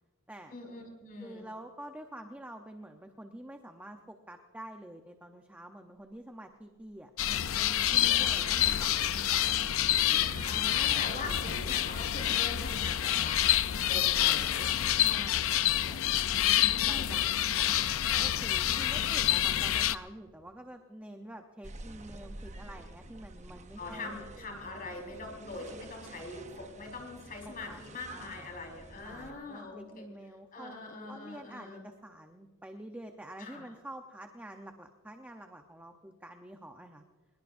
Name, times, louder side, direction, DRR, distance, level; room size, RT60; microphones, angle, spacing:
voice 1, 0.5-1.5 10.1-13.5 13.8-14.9 16.3-17.3 18.9-19.2 23.8-30.0 30.5-31.9 33.4-33.7, left 3 dB, 40° left, 0 dB, 4.7 m, -43 dB
voice 2, 1.2-9.6 15.0-16.1 16.8-24.2 27.4-27.8 28.1-28.6 29.0-30.8 31.1-37.0, right 1 dB, 10° right, 4 dB, 0.8 m, -47 dB
sound 1, 7.2-20.0, left 12 dB, 70° left, 0.5 m, -28 dB
sound 2, 7.8-11.9, right 2 dB, 80° right, 1.5 m, -46 dB
sound 3, 21.6-29.3, right 2 dB, 35° right, 0.9 m, -49 dB
22.5 x 21.5 x 2.6 m, 1.5 s
head